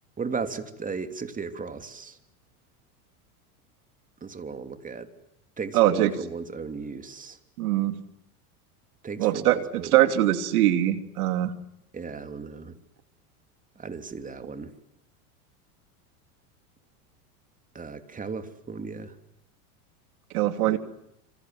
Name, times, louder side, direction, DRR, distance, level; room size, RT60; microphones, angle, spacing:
voice 1, 0.2-2.2 4.2-5.1 5.6-7.4 9.0-10.0 11.9-12.8 13.8-14.7 17.7-19.1 20.7-20.8, right 5 dB, 20° right, 8 dB, 3.1 m, -36 dB
voice 2, 5.7-6.1 7.6-8.0 9.2-11.5 20.3-20.8, right 13 dB, 75° right, 10 dB, 3.0 m, -22 dB
27.0 x 26.0 x 7.9 m, 0.78 s
supercardioid pair, 115°, 44 cm